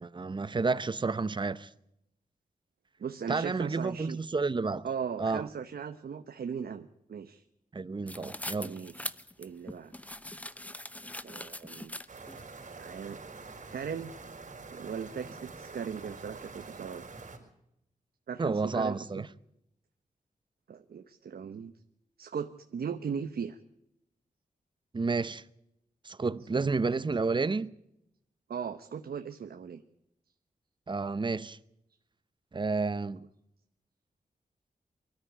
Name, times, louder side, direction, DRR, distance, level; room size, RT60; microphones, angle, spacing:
voice 1, 0.0-1.7 3.3-4.8 5.2-5.4 7.7-8.8 18.4-19.3 24.9-25.4 26.0-27.7 30.9-31.6 32.5-33.2, right 4 dB, 30° right, 0.7 m, -30 dB
voice 2, 3.0-4.2 4.8-7.4 8.6-9.1 9.4-9.9 11.2-11.9 12.7-13.2 13.7-14.1 14.7-17.1 18.3-19.3 20.7-21.7 22.2-23.6 26.5-26.6 28.5-29.8, right 7 dB, 85° right, 1.0 m, -38 dB
sound 1, 8.1-12.4, left 1 dB, 10° left, 0.8 m, -41 dB
sound 2, 12.1-17.4, right 4 dB, 55° right, 5.3 m, -46 dB
24.0 x 13.5 x 8.2 m
wide cardioid pair, 125°, 15 cm